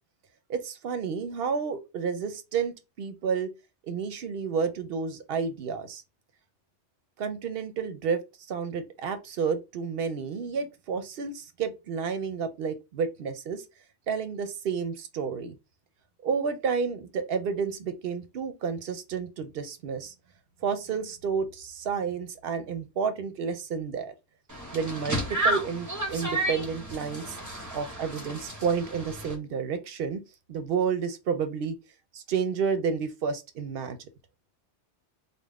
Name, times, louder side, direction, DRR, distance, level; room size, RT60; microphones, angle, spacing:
voice 1, 0.5-3.5 3.8-6.0 7.2-8.2 8.5-13.6 14.1-15.6 16.2-20.1 20.6-24.1 24.7-27.4 27.7-30.2 30.5-31.8 32.1-34.0, right 6 dB, 60° right, 0.8 m, -30 dB
sound 1, 24.5-29.3, right 1 dB, 20° right, 0.8 m, -32 dB
3.7 x 2.2 x 3.5 m
omnidirectional pair, 1.2 m